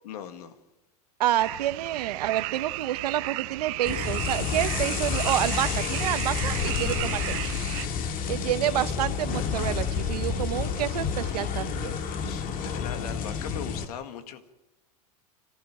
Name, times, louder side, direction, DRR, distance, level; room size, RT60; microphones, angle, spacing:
voice 1, 0.0-0.5 6.8-7.4 12.2-14.5, left 8 dB, 70° left, 2.1 m, -40 dB
voice 2, 1.2-7.4 8.3-12.0, right 13 dB, 75° right, 1.0 m, -28 dB
sound 1, 1.4-7.9, right 20 dB, 60° right, 0.7 m, -34 dB
sound 2, 3.9-13.9, left 6 dB, 45° left, 2.0 m, -30 dB
26.0 x 15.0 x 9.0 m
hypercardioid pair, 95°, 20 cm